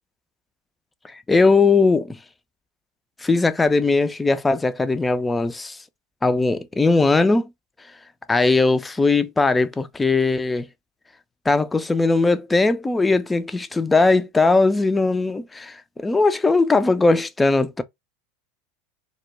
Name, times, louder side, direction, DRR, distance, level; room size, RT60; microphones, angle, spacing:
voice 1, 1.1-2.2 3.2-5.8 6.2-7.5 8.3-10.7 11.5-17.8, left 3 dB, 15° left, 0.3 m, -19 dB
2.2 x 2.1 x 2.9 m
hypercardioid pair, 85°, 0 cm